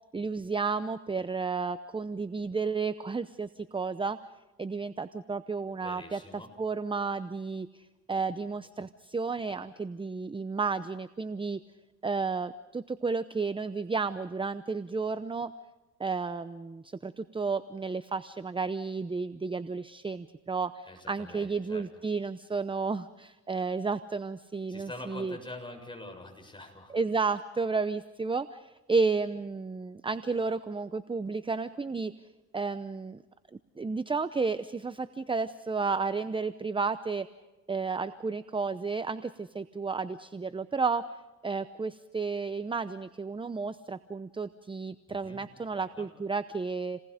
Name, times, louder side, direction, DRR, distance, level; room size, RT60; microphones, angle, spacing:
voice 1, 0.1-4.2 4.6-11.6 12.0-15.5 16.0-25.4 26.9-32.1 32.5-33.2 33.5-37.3 37.7-47.0, right 4 dB, 15° right, 12 dB, 0.8 m, -32 dB
voice 2, 5.8-6.5 20.9-21.9 24.7-27.0 45.1-45.5 45.7-46.1, left 2 dB, 15° left, 3 dB, 7.1 m, -45 dB
29.5 x 19.5 x 5.1 m, 1.1 s
cardioid pair, 90°, 30 cm